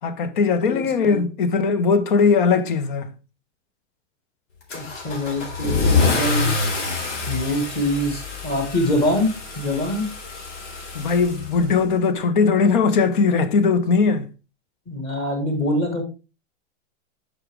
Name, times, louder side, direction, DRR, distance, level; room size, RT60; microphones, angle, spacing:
voice 1, 0.0-3.1 10.9-14.3, left 5 dB, 45° left, 0.9 m, -19 dB
voice 2, 0.7-1.2 4.7-6.5 7.3-10.1 14.9-16.0, left 1 dB, 15° left, 1.7 m, -24 dB
Car / Engine starting / Accelerating revving vroom, 4.7-12.0, left 4 dB, 75° left, 4.0 m, -26 dB
8.6 x 6.2 x 3.5 m
supercardioid pair, 180°, 35 cm